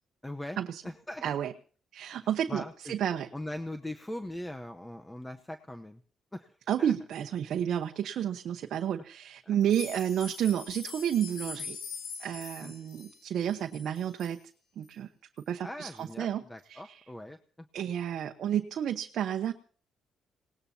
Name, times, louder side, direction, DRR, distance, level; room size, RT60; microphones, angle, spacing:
voice 1, 0.2-0.6 0.8-1.3 2.5-3.0 3.3-6.0 6.3-6.9 9.4-9.6 12.6-12.7 15.6-17.7, left 1 dB, 10° left, 7 dB, 0.9 m, -41 dB
voice 2, 1.2-1.5 1.9-3.3 6.7-11.8 12.2-14.4 14.8-15.1 15.5-16.4 16.7-16.8 17.7-19.5, right 9 dB, 70° right, 4 dB, 0.9 m, -31 dB
sound 1, 9.6-14.4 14.8-14.9 15.4-15.5 16.0-16.1, left 5 dB, 70° left, 4.7 m, -43 dB
27.0 x 19.0 x 2.8 m, 0.42 s
cardioid pair, 90°, 0 cm